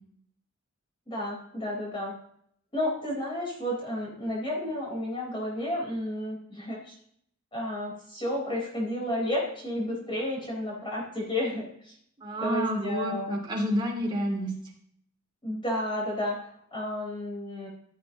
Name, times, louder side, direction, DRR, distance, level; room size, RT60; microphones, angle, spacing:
voice 1, 1.1-2.1 2.7-6.9 7.5-11.9 12.4-13.4 15.4-17.7, left 1 dB, 25° left, -3 dB, 4.2 m, -32 dB
voice 2, 12.2-14.5, equal, 25° right, -1 dB, 2.8 m, -29 dB
15.0 x 7.9 x 3.0 m, 0.66 s
head